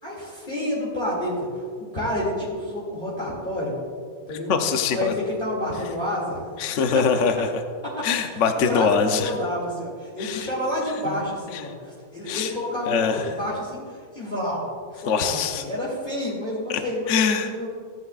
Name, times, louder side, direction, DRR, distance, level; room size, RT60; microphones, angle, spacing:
voice 1, 0.0-1.7 1.9-3.7 4.3-4.5 4.9-7.0 8.0-8.4 8.7-17.7, left 1 dB, 30° left, -8 dB, 2.6 m, -29 dB
voice 2, 4.5-5.1 6.6-7.5 8.0-9.3 10.2-10.5 11.0-11.2 11.5-11.6 12.3-12.5 12.9-13.3 15.1-15.6 17.1-17.5, left 6 dB, 55° left, 6 dB, 0.9 m, -23 dB
16.5 x 9.8 x 2.4 m, 2.1 s
omnidirectional pair, 1.8 m